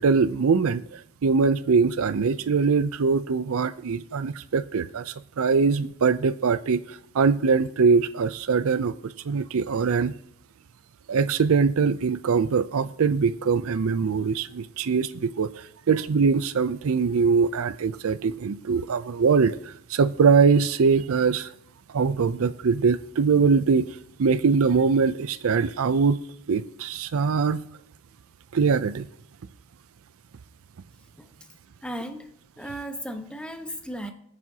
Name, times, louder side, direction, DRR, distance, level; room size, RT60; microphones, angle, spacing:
voice 1, 0.0-10.1 11.1-21.5 21.9-23.9 24.2-26.2 26.5-27.6 28.5-29.1, right 5 dB, 65° right, 14 dB, 0.4 m, -22 dB
voice 2, 31.8-34.1, equal, 5° left, 5 dB, 1.0 m, -36 dB
21.5 x 9.2 x 2.8 m, 0.70 s
head